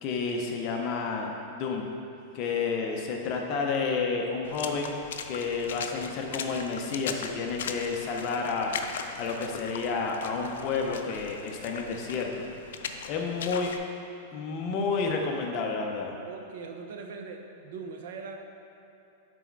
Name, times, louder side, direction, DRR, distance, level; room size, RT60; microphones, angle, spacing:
voice 1, 0.0-1.9 2.3-4.9 5.3-8.7 9.2-12.3 13.1-13.7 14.3-16.1, left 4 dB, 30° left, 1 dB, 0.5 m, -30 dB
Water / Splash splatter, 4.4-13.8, left 6 dB, 75° left, 0.4 m, -39 dB
voice 2, 16.3-18.4, right 4 dB, 55° right, 4 dB, 0.5 m, -40 dB
6.0 x 4.1 x 4.6 m, 2.9 s
supercardioid pair, 175°, 0 cm